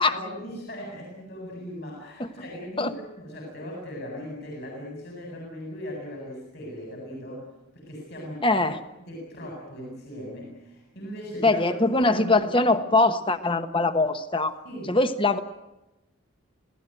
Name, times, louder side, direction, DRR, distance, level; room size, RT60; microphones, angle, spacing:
voice 1, 0.0-7.5 7.7-8.5 9.1-11.6 11.9-12.5 14.6-15.0, equal, 50° left, -1 dB, 8.0 m, -39 dB
voice 2, 8.4-8.8 11.4-14.5 14.9-15.4, left 2 dB, 25° left, 9 dB, 1.3 m, -22 dB
28.0 x 17.5 x 9.2 m, 0.99 s
head